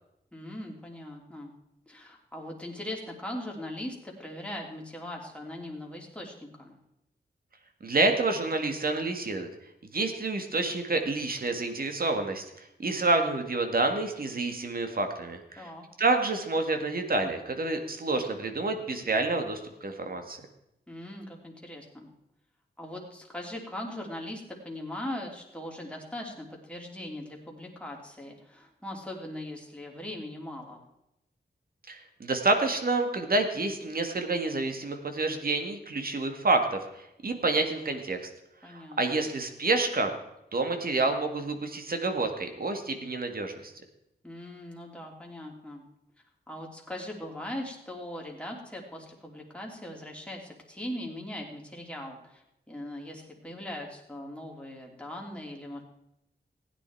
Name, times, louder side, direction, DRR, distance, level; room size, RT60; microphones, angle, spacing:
voice 1, 0.3-1.5 1.9-6.8 15.6-15.8 20.9-22.1 22.8-30.8 38.6-39.3 44.2-45.9 46.5-55.8, left 1 dB, 5° left, -1 dB, 3.1 m, -40 dB
voice 2, 7.8-9.5 9.9-15.7 16.0-20.4 31.9-38.3 38.6-40.1 40.5-43.7, right 3 dB, 55° right, 5 dB, 1.9 m, -28 dB
16.0 x 9.8 x 4.6 m, 0.86 s
wide cardioid pair, 90°, 18 cm